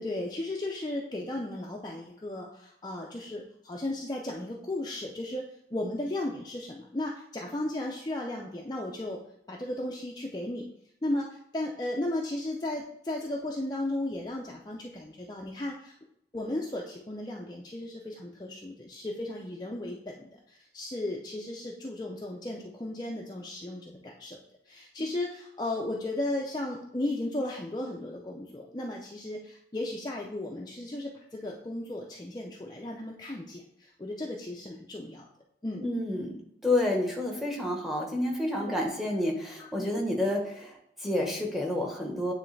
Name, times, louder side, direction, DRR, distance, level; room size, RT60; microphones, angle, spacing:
voice 1, 0.0-9.2 9.5-10.6 11.0-15.9 16.3-24.4 24.7-35.3 35.6-35.8 38.6-38.8 39.6-39.9, left 1 dB, 20° left, -2 dB, 0.5 m, -35 dB
voice 2, 35.8-42.3, left 1 dB, ahead, 0 dB, 1.0 m, -29 dB
9.2 x 3.2 x 3.2 m, 0.74 s
head